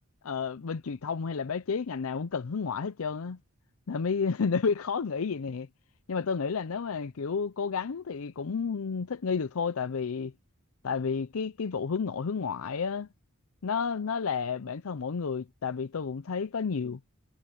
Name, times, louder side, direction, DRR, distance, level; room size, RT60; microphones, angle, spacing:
voice 1, 0.2-3.4 3.9-5.7 6.1-10.3 10.8-13.1 13.6-17.0, left 5 dB, 70° left, 0.5 m, -31 dB
head